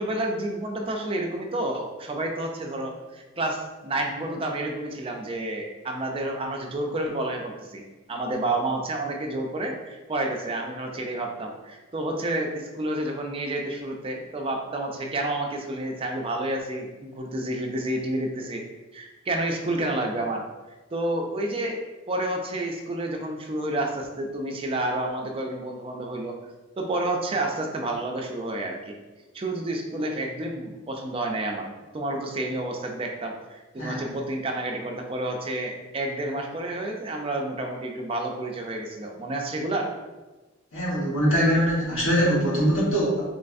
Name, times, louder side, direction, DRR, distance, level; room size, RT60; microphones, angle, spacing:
voice 1, 0.0-7.8 8.1-18.6 18.9-20.5 20.9-21.8 22.1-26.4 26.8-28.9 29.3-39.9, right 1 dB, 30° right, 1 dB, 0.4 m, -30 dB
voice 2, 40.7-43.2, equal, 85° left, -6 dB, 1.2 m, -22 dB
3.1 x 3.1 x 2.6 m, 1.1 s
head